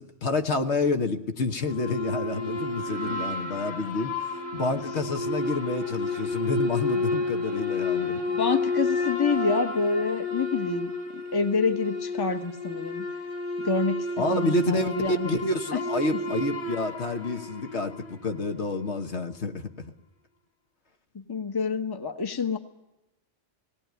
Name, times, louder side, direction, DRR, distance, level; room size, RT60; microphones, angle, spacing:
voice 1, 0.0-8.2 14.2-19.9, left 3 dB, 65° left, 5 dB, 1.4 m, -29 dB
sound 1, 1.6-18.2, left 3 dB, 85° left, 3.1 m, -31 dB
voice 2, 8.3-10.9 11.3-13.1 13.6-15.3 15.7-15.8 21.1-22.6, left 4 dB, 20° left, 8 dB, 1.0 m, -27 dB
18.5 x 18.0 x 9.2 m, 0.96 s
omnidirectional pair, 1.2 m